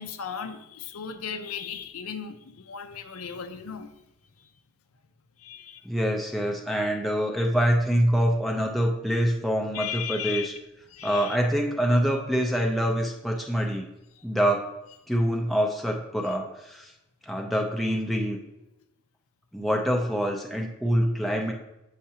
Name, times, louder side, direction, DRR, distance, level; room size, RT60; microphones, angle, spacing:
voice 1, 0.0-3.9 4.4-4.5 5.4-5.9 9.7-10.5 10.9-11.4 14.2-14.3, left 7 dB, 85° left, 9 dB, 0.6 m, -36 dB
voice 2, 5.8-10.5 11.0-13.9 14.2-14.7 15.1-16.9 17.3-18.4 19.5-21.5, equal, ahead, 0 dB, 0.5 m, -25 dB
8.3 x 5.7 x 2.8 m, 0.90 s
head